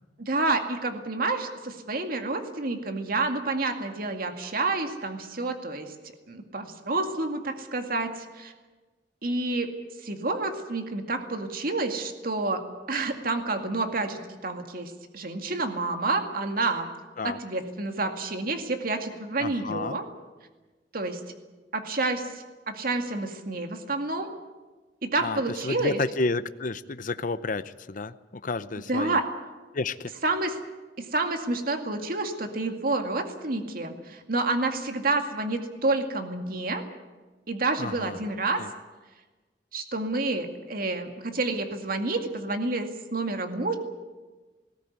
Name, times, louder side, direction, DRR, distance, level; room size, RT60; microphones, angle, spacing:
voice 1, 0.2-5.9 6.3-8.5 9.2-9.7 10.0-12.6 12.9-16.9 17.2-20.1 20.9-21.2 21.7-24.3 25.0-26.0 28.9-29.3 30.2-30.6 31.0-36.8 37.5-38.6 39.7-43.8, right 2 dB, 55° right, 5 dB, 2.2 m, -29 dB
voice 2, 19.4-20.0 25.2-28.1 28.4-29.2 29.7-30.1 37.8-38.2 38.6-38.7, left 3 dB, 50° left, 13 dB, 0.7 m, -31 dB
20.0 x 16.5 x 9.4 m, 1.2 s
head